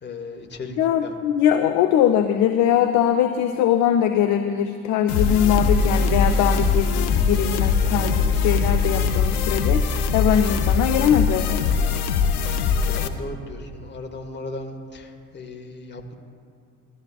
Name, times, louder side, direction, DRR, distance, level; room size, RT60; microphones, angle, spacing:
voice 1, 0.0-1.1 12.4-16.1, left 2 dB, 25° left, 3 dB, 1.4 m, -37 dB
voice 2, 0.8-9.8 10.1-11.7, left 9 dB, 40° left, 8 dB, 0.5 m, -21 dB
sound 1, 5.1-13.1, left 5 dB, 75° left, 0.7 m, -21 dB
16.5 x 12.0 x 2.3 m, 2.5 s
figure-of-eight pair, 60°, 45 cm